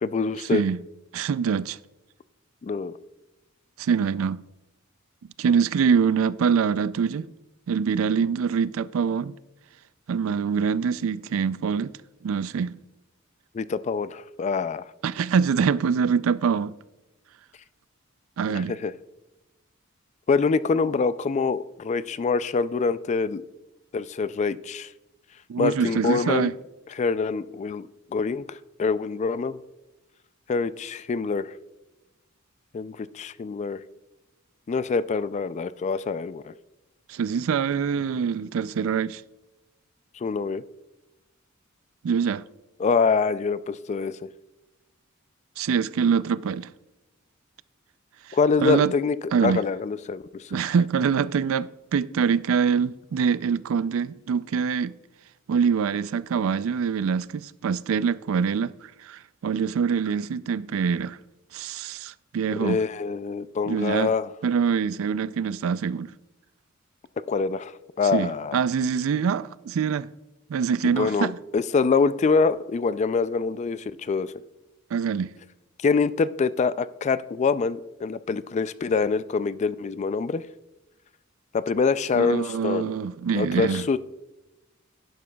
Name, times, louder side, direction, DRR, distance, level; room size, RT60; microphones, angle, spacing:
voice 1, 0.0-0.6 2.6-3.0 13.5-14.8 18.5-18.9 20.3-23.4 23.9-24.9 25.6-26.5 26.9-29.6 30.5-31.5 32.7-33.8 34.7-36.5 40.2-40.6 42.8-44.1 48.3-49.2 49.4-50.5 62.6-64.3 67.3-67.7 68.0-68.6 70.8-74.3 75.8-80.4 81.5-82.9 83.3-84.0, left 4 dB, 35° left, 0.3 m, -25 dB
voice 2, 0.5-0.8 1.1-1.8 3.8-4.4 5.4-7.3 7.7-9.3 10.1-11.9 12.2-12.8 15.0-16.7 18.4-18.7 25.5-26.5 37.1-39.2 42.0-42.4 45.6-46.7 48.6-48.9 49.3-49.6 50.5-54.9 55.5-58.7 59.0-61.2 61.5-62.8 63.7-64.1 64.4-66.1 68.1-70.1 70.5-71.4 74.9-75.3 82.2-83.9, right 6 dB, 80° right, 0.4 m, -24 dB
11.0 x 11.0 x 2.3 m
head